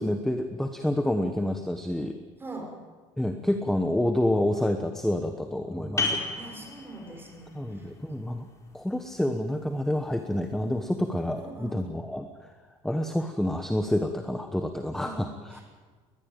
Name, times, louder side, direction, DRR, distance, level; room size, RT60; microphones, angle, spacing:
voice 1, 0.0-2.2 3.2-6.2 7.5-8.5 8.7-12.3 12.8-15.6, left 1 dB, 5° left, 6 dB, 1.2 m, -28 dB
voice 2, 2.4-2.7 6.4-7.9 11.3-11.9 14.9-15.6, right 2 dB, 15° right, 1 dB, 5.8 m, -42 dB
sound 1, 6.0-11.3, left 3 dB, 20° left, 4.2 m, -36 dB
21.0 x 19.5 x 9.0 m, 1.5 s
cardioid pair, 155°, 14 cm